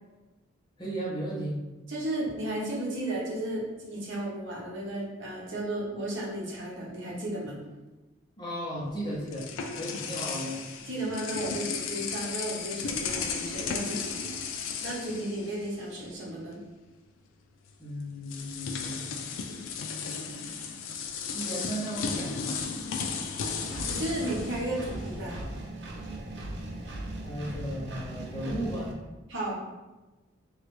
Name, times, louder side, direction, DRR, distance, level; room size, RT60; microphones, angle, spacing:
voice 1, 0.8-1.6 8.4-9.5 9.7-10.6 17.8-19.1 21.3-22.6 27.2-28.9, right 1 dB, 20° left, -6 dB, 0.7 m, -35 dB
voice 2, 1.9-7.6 10.9-14.3 14.8-16.6 23.9-25.4 29.3-29.7, right 1 dB, 70° right, -4 dB, 0.9 m, -34 dB
sound 1, 8.8-16.1 16.4-16.6 17.7-17.8 18.2-25.4, left 5 dB, 80° left, 0.3 m, -35 dB
Engine, 23.7-28.9, right 1 dB, 55° right, 0.4 m, -38 dB
3.1 x 2.4 x 3.0 m, 1.1 s
head